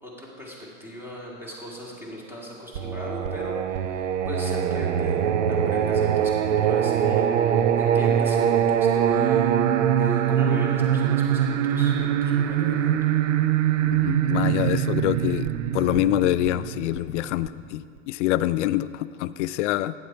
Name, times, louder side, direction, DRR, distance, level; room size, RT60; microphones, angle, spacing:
voice 1, 0.0-9.5 10.0-13.0, left 1 dB, 5° right, -4 dB, 2.2 m, -38 dB
Singing, 2.7-17.5, right 9 dB, 70° right, 0.7 m, -23 dB
voice 2, 13.9-15.5 15.7-19.9, left 14 dB, 65° left, 15 dB, 0.5 m, -25 dB
9.5 x 7.6 x 4.5 m, 2.1 s
hypercardioid pair, 110°, 39 cm